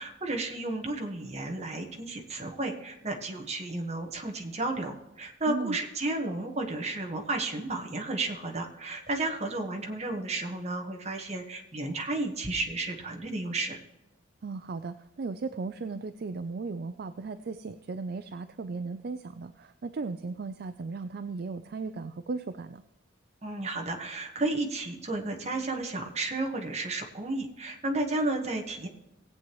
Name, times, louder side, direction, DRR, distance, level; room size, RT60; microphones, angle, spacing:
voice 1, 0.0-13.8 23.4-28.9, right 2 dB, 35° right, 2 dB, 1.3 m, -32 dB
voice 2, 14.4-22.8, right 4 dB, 50° right, 10 dB, 0.4 m, -36 dB
17.5 x 8.6 x 3.1 m, 0.98 s
head